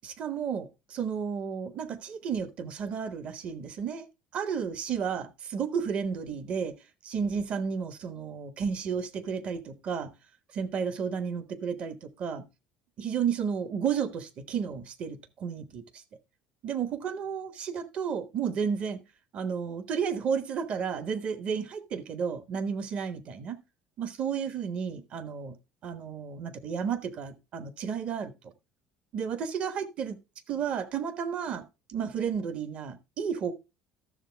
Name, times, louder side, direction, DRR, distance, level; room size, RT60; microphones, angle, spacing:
voice 1, 0.0-4.1 4.3-6.8 7.0-10.1 10.5-12.5 13.0-16.0 16.6-19.0 19.3-23.6 24.0-25.6 25.8-28.5 29.1-30.2 30.5-33.5, right 7 dB, 50° right, 1.2 m, -32 dB
13.0 x 7.0 x 3.4 m
supercardioid pair, 105°, 3 cm